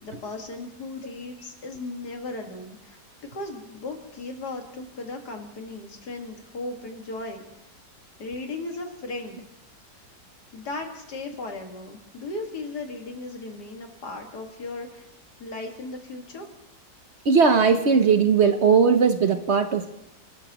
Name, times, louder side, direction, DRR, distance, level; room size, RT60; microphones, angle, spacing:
voice 1, 0.0-7.4 8.2-9.4 10.5-15.1 15.4-16.5, left 2 dB, 65° left, 2 dB, 2.5 m, -36 dB
voice 2, 17.2-19.9, right 5 dB, 50° right, 8 dB, 0.9 m, -19 dB
30.0 x 13.5 x 3.0 m, 0.85 s
omnidirectional pair, 1.9 m